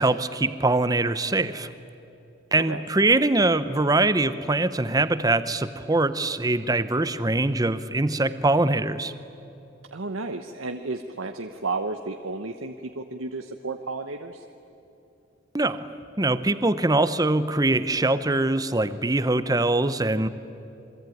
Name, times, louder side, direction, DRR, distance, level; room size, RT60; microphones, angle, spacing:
voice 1, 0.0-1.7 2.5-9.1 15.5-15.9 16.2-20.3, right 2 dB, 20° right, 13 dB, 0.8 m, -23 dB
voice 2, 9.9-14.4, right 3 dB, 80° right, 6 dB, 1.1 m, -32 dB
28.0 x 22.5 x 9.3 m, 2.8 s
head